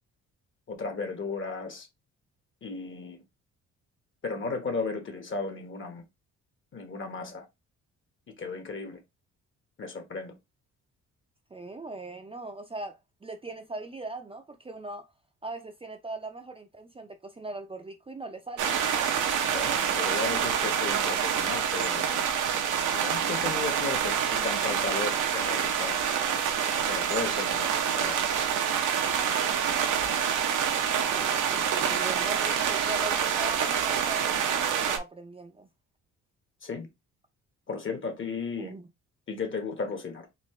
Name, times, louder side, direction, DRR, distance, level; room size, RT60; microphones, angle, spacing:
voice 1, 0.7-1.9 2.6-3.2 4.2-6.0 6.7-7.5 8.4-9.0 9.8-10.4 19.5-22.3 22.9-26.0 26.9-28.3 36.6-36.9 37.7-38.7 39.3-40.3, left 4 dB, 40° left, 1.3 m, -35 dB
voice 2, 11.5-15.1 15.4-18.8 31.1-35.7 38.6-38.9, right 2 dB, 20° right, 0.6 m, -40 dB
sound 1, 18.6-35.0, right 8 dB, 80° right, 0.9 m, -27 dB
4.3 x 2.6 x 3.2 m
cardioid pair, 90°, 30 cm